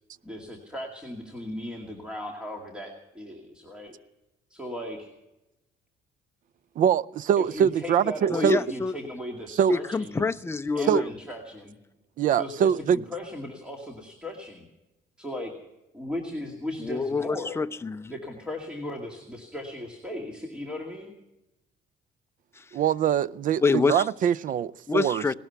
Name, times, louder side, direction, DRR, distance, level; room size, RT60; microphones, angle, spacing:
voice 1, 0.2-3.9 4.5-5.1 7.4-10.3 10.7-11.7 12.3-14.7 15.2-15.5 15.9-17.6 18.1-21.1, left 1 dB, 5° right, 2.3 m, -37 dB
voice 2, 6.8-8.6 9.6-9.8 10.9-11.0 12.2-13.0 22.7-25.2, right 9 dB, 50° right, 0.5 m, -23 dB
voice 3, 8.3-9.0 9.7-11.1 16.8-18.1 22.6-22.7 23.6-24.1 24.9-25.3, left 4 dB, 15° left, 0.6 m, -26 dB
18.5 x 12.5 x 5.8 m
cardioid pair, 110°, 17 cm